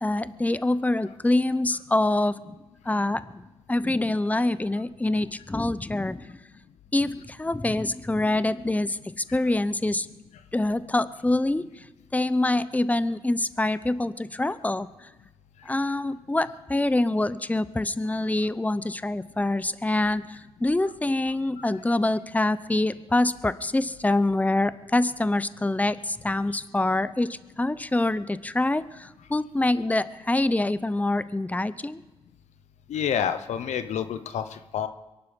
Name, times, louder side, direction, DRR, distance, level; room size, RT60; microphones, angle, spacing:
voice 1, 0.0-2.6 2.8-3.4 3.7-6.4 6.9-10.1 10.5-11.9 12.1-15.1 15.6-32.0, left 2 dB, 15° left, 15 dB, 0.7 m, -25 dB
voice 2, 32.9-34.9, left 8 dB, 90° left, 11 dB, 0.9 m, -28 dB
23.5 x 11.0 x 5.3 m, 1.1 s
cardioid pair, 60°, 12 cm